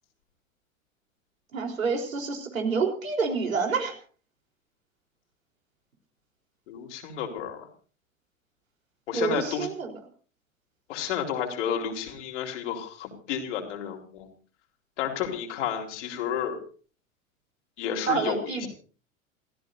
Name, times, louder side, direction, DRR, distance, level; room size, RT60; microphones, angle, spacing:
voice 1, 1.5-4.0 9.1-10.0 18.1-18.7, right 5 dB, 75° right, 3 dB, 3.9 m, -28 dB
voice 2, 6.7-7.7 9.1-9.7 10.9-14.3 15.0-16.6 17.8-18.7, left 8 dB, 60° left, 2 dB, 4.1 m, -31 dB
28.0 x 15.0 x 2.6 m, 0.40 s
figure-of-eight pair, 90°, 40 cm